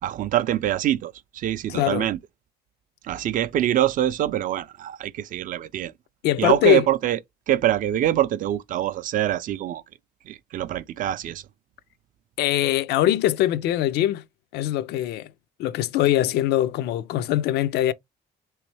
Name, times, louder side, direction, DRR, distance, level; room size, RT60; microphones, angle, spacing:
voice 1, 0.0-2.2 3.1-5.9 6.4-7.2 7.5-9.8 10.3-11.4, right 12 dB, 55° right, 0.4 m, -24 dB
voice 2, 1.7-2.1 6.2-6.9 12.4-14.2 14.5-15.3 15.6-17.9, left 13 dB, 80° left, 0.4 m, -22 dB
3.3 x 3.1 x 3.1 m
cardioid pair, 110°, 17 cm